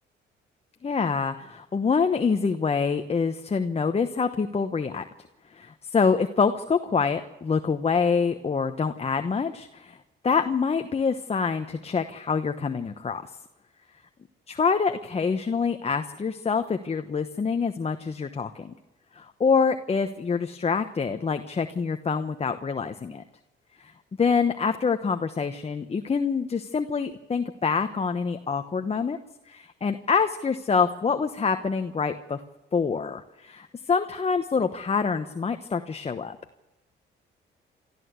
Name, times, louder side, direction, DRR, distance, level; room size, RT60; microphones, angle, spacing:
voice 1, 0.8-5.0 5.5-10.0 10.2-13.3 14.5-18.7 19.1-23.2 23.8-23.9 24.2-29.2 29.5-32.4 32.7-36.4, left 5 dB, 30° left, 7 dB, 1.0 m, -26 dB
27.5 x 13.5 x 8.1 m, 1.1 s
cardioid pair, 90°, 20 cm